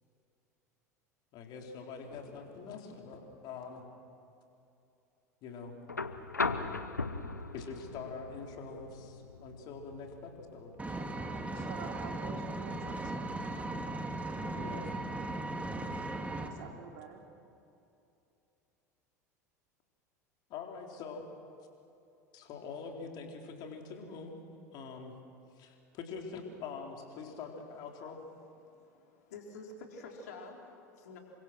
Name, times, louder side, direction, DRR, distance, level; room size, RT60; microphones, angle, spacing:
voice 1, 1.3-3.8 5.4-5.7 7.5-10.8 14.6-14.9 20.5-21.3 22.3-24.4 24.7-25.2 25.5-28.2, left 5 dB, 50° left, 2 dB, 4.3 m, -44 dB
sound 1, 5.9-13.9 15.3-15.4, left 3 dB, 90° left, 1.0 m, -40 dB
Vehicle, 10.8-16.5, right 2 dB, 15° right, 2.5 m, -37 dB
voice 2, 11.5-13.3 16.3-17.2, right 6 dB, 60° right, 2 dB, 3.4 m, -47 dB
voice 3, 28.6-31.2, left 3 dB, 70° left, 1 dB, 4.3 m, -49 dB
29.0 x 25.0 x 6.2 m, 2.7 s
figure-of-eight pair, 75°, 9 cm